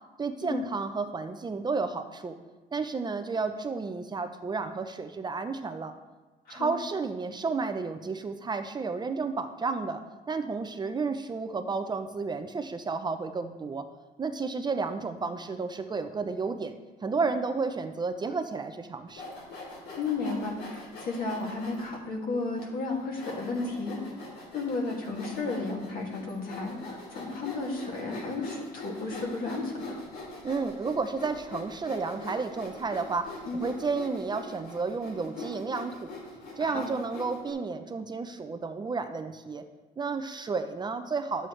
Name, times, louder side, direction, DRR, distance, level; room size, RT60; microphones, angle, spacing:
voice 1, 0.2-2.3 2.7-5.9 6.5-10.0 10.3-13.9 14.2-16.7 17.0-19.2 30.4-36.1 36.6-39.6 40.0-41.5, right 4 dB, 25° right, 8 dB, 0.6 m, -32 dB
Sawing, 19.1-22.0 22.6-22.7 23.2-37.5, left 2 dB, 80° left, 2.9 m, -43 dB
voice 2, 20.0-24.0 24.5-30.0 33.5-33.6 36.6-36.9, left 3 dB, 60° left, -1 dB, 2.3 m, -33 dB
11.0 x 7.8 x 3.2 m, 1.2 s
cardioid pair, 110°, 17 cm